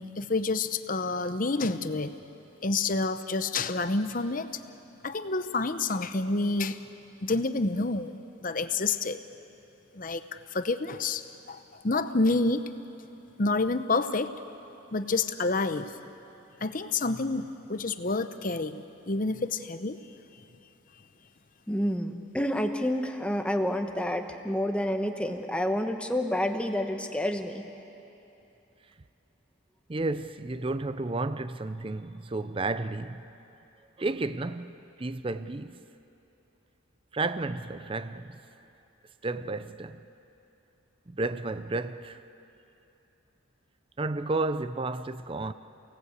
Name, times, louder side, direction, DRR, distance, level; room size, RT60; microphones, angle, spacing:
voice 1, 0.0-2.2 2.6-4.5 5.0-6.8 7.2-9.2 9.9-11.2 11.5-12.7 13.4-14.4 14.9-16.0 16.6-20.0, left 3 dB, 40° left, 0.8 m, -28 dB
voice 2, 21.7-27.6, left 1 dB, 5° left, 1.1 m, -29 dB
voice 3, 29.9-33.3 34.0-35.8 37.1-38.4 39.2-40.1 41.1-42.2 44.0-45.5, right 2 dB, 25° right, 0.5 m, -32 dB
29.0 x 18.0 x 8.2 m
head